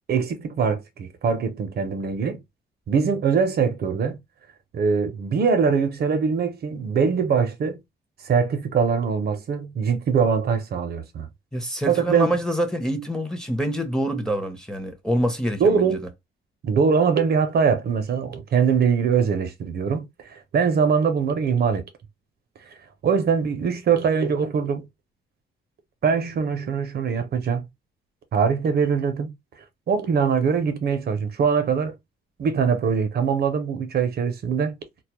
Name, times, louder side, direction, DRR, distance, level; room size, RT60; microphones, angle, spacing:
voice 1, 0.1-2.4 2.9-4.2 4.7-7.8 8.2-11.3 11.9-12.3 15.6-16.0 16.6-21.8 23.0-24.8 26.0-27.7 28.3-29.3 29.9-31.9 32.4-34.7, right 6 dB, 55° right, 0.5 m, -22 dB
voice 2, 11.5-16.0, equal, 5° left, 0.6 m, -26 dB
2.1 x 2.0 x 2.9 m
cardioid pair, 90°, 20 cm